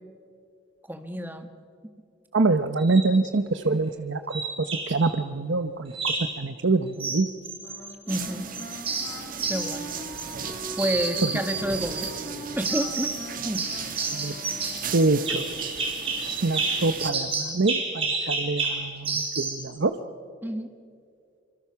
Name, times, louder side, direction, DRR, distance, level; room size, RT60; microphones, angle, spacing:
voice 1, 0.9-1.5 3.7-3.8 8.1-8.5 9.5-9.9 10.8-12.1 12.6-13.1 13.4-13.6 20.4-20.7, equal, 10° right, 7 dB, 1.6 m, -29 dB
voice 2, 2.3-7.3 11.2-11.3 14.1-14.3 14.9-15.5 16.4-19.9, right 3 dB, 75° right, 9 dB, 0.8 m, -25 dB
sound 1, 2.8-3.1 4.3-5.1 5.9-6.4 7.0-8.2 8.5-10.5 10.8-12.1 12.6-13.2 13.5-19.6, right 4 dB, 30° right, 4.4 m, -30 dB
Wind instrument woodwind instrument, 7.6-15.0, left 1 dB, 25° left, 6.6 m, -41 dB
sound 2, 8.1-17.1, right 6 dB, 45° right, 1.5 m, -37 dB
26.0 x 25.5 x 5.9 m, 2.3 s
head